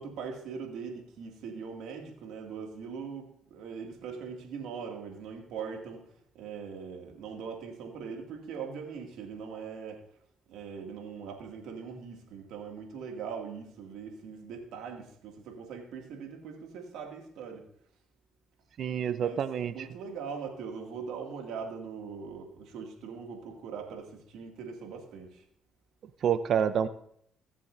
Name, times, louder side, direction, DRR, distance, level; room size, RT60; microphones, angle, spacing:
voice 1, 0.0-6.1 6.3-10.0 10.5-17.7 19.2-25.4, right 6 dB, 80° right, 1 dB, 2.4 m, -41 dB
voice 2, 18.8-19.7 26.2-26.9, right 8 dB, 65° right, 13 dB, 0.7 m, -27 dB
20.5 x 7.5 x 2.7 m, 0.66 s
supercardioid pair, 75°, 0 cm